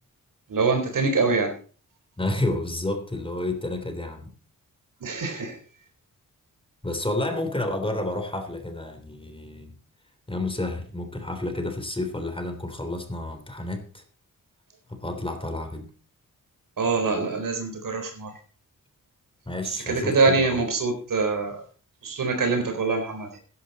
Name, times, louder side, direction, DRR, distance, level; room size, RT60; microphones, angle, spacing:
voice 1, 0.5-1.5 5.0-5.6 16.8-18.3 19.7-21.6 22.0-23.3, right 4 dB, 70° right, 5 dB, 4.2 m, -24 dB
voice 2, 2.2-4.3 6.8-9.7 10.3-14.0 14.9-15.9 19.5-20.7, left 2 dB, 15° left, 6 dB, 3.3 m, -30 dB
15.0 x 11.0 x 4.2 m, 0.40 s
cardioid pair, 75°, 33 cm